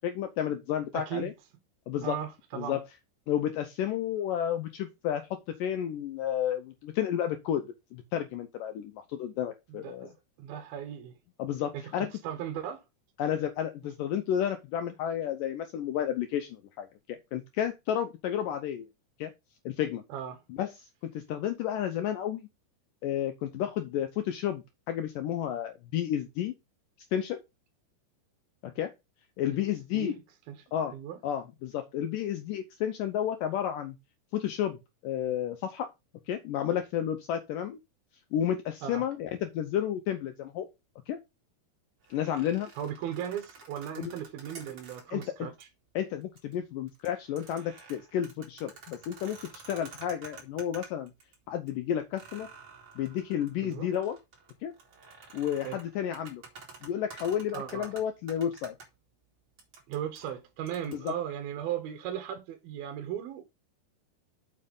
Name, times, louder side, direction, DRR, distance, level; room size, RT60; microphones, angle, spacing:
voice 1, 0.0-1.3 1.9-2.2 2.6-2.8 3.3-10.1 11.4-12.1 13.2-18.9 19.2-19.3 19.7-20.0 20.5-22.5 23.0-26.5 27.1-27.4 28.6-28.9 29.4-30.2 30.7-30.9 31.2-34.0 34.3-34.8 35.0-35.9 36.3-37.8 38.3-40.7 41.1-41.2 42.1-42.7 44.0-44.1 45.1-45.2 46.0-51.1 51.5-52.5 53.0-54.2 54.6-54.7 55.3-56.4 56.8-58.7 60.9-61.1, left 10 dB, 90° left, 1.9 m, -31 dB
voice 2, 0.9-1.3 2.0-2.8 9.7-10.1 10.4-11.2 11.7-12.8 20.1-20.4 29.5-29.6 29.9-30.2 30.5-30.7 30.9-31.2 38.8-39.1 42.8-45.7 53.6-53.9 55.6-55.8 57.5-57.9 59.9-63.4, right 10 dB, 70° right, 2.8 m, -37 dB
sound 1, 42.0-45.3 45.6-45.7 46.2-46.5 46.9-51.3 51.7-51.8 52.1-58.9 59.6-61.1, right 4 dB, 35° right, 3.0 m, -50 dB
7.6 x 5.4 x 5.3 m
omnidirectional pair, 4.9 m